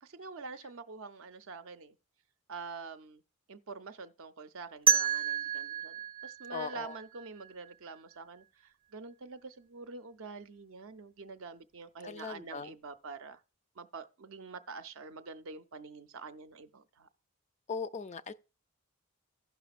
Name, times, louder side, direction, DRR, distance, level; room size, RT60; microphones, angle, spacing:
voice 1, 0.0-2.0 2.5-3.2 3.5-5.9 6.2-8.4 8.9-13.4 13.8-17.1, right 4 dB, 65° right, 0.6 m, -46 dB
sound 1, 4.9-7.7, right 7 dB, 25° right, 0.7 m, -30 dB
voice 2, 6.5-7.0 12.0-12.7 17.7-18.3, left 5 dB, 30° left, 0.3 m, -39 dB
16.0 x 5.9 x 2.4 m
head